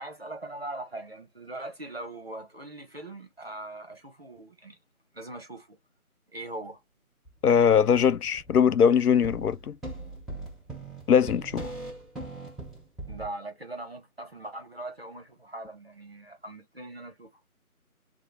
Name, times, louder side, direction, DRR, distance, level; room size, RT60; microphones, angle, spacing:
voice 1, 0.0-4.8 5.1-5.8 6.3-6.8 13.1-17.3, right 2 dB, 45° right, 0.8 m, -40 dB
sound 1, 7.3-7.4 7.7-8.8 9.2-13.3, right 2 dB, ahead, 0.6 m, -40 dB
voice 2, 7.4-9.8 11.1-11.7, left 7 dB, 85° left, 0.5 m, -21 dB
2.9 x 2.0 x 3.1 m
figure-of-eight pair, 175°, 44 cm